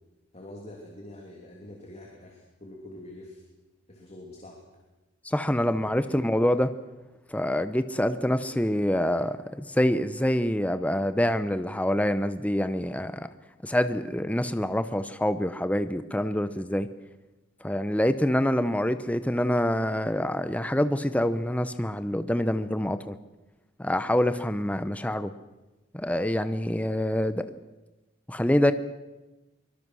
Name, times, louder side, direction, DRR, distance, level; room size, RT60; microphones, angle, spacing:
voice 1, 0.3-3.4 3.9-4.6 5.8-6.2, left 1 dB, 30° left, 0 dB, 3.0 m, -45 dB
voice 2, 5.2-6.7 7.3-13.3 13.6-16.9 17.6-23.2 23.8-25.3 25.9-27.4 28.3-28.7, left 1 dB, 5° left, 11 dB, 0.7 m, -26 dB
23.5 x 22.5 x 6.3 m, 1.1 s
head